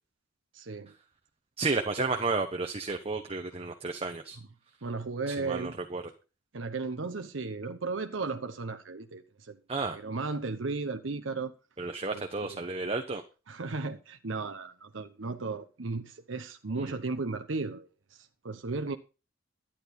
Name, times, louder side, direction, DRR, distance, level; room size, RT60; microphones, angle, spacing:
voice 1, 0.5-0.9 4.8-5.7 6.5-9.6 9.9-11.5 12.1-12.6 13.5-19.0, right 3 dB, 85° right, 0.9 m, -35 dB
voice 2, 1.6-4.4 5.3-6.0 9.7-10.0 11.8-13.2 16.8-16.9, right 3 dB, 30° right, 1.1 m, -32 dB
12.0 x 10.0 x 4.2 m
head